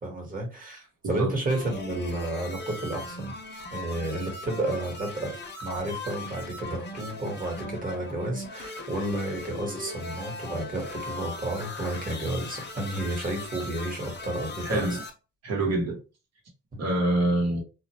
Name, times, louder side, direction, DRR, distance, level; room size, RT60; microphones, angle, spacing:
voice 1, 0.0-3.3 3.7-5.3 5.6-15.0 16.7-16.9, right 1 dB, 30° right, 1.3 m, -31 dB
sound 1, 1.5-15.1, left 2 dB, 35° left, 0.7 m, -39 dB
voice 2, 14.6-15.0 15.4-16.0 16.8-17.6, right 2 dB, 55° right, 1.1 m, -25 dB
2.4 x 2.0 x 3.0 m
cardioid pair, 90°, 30 cm